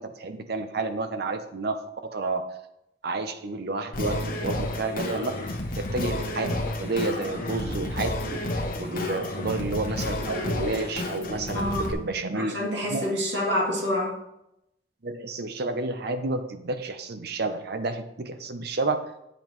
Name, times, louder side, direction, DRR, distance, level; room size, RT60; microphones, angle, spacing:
voice 1, 0.0-2.5 3.0-12.5 12.9-13.0 15.0-19.0, right 3 dB, 60° right, 8 dB, 0.8 m, -30 dB
Singing, 3.9-11.9, left 1 dB, 55° left, 1.1 m, -31 dB
voice 2, 11.5-12.1 12.3-14.2, left 1 dB, 90° right, -3 dB, 2.4 m, -27 dB
8.9 x 7.6 x 3.1 m, 0.83 s
head